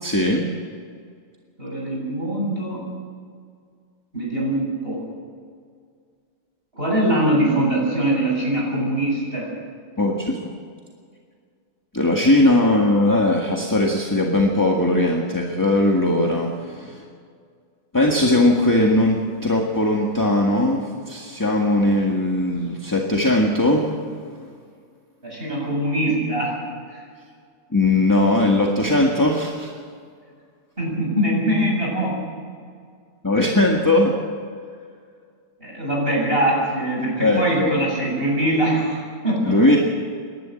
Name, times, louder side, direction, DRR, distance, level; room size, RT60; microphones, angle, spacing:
voice 1, 0.0-0.5 10.0-10.4 11.9-17.1 17.9-23.9 27.7-29.7 33.2-34.1 37.2-37.9 39.5-39.8, left 1 dB, 10° left, 0 dB, 1.6 m, -19 dB
voice 2, 1.6-2.8 4.1-5.0 6.7-9.5 25.2-26.6 26.9-27.0 30.8-32.2 35.6-39.6, right 1 dB, 30° right, -3 dB, 7.9 m, -22 dB
28.0 x 12.0 x 7.8 m, 2.1 s
omnidirectional pair, 2.0 m